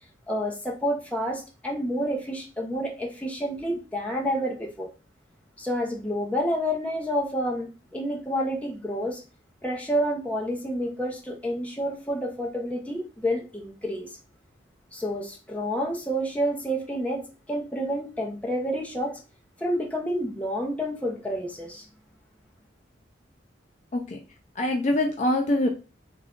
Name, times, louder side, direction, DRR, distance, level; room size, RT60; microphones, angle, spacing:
voice 1, 0.3-4.9 5.6-9.2 9.6-14.1 14.9-19.2 19.6-21.8, equal, 5° left, -1 dB, 0.7 m, -29 dB
voice 2, 24.6-25.7, left 1 dB, 40° left, 2 dB, 0.4 m, -24 dB
3.5 x 2.5 x 3.6 m, 0.33 s
head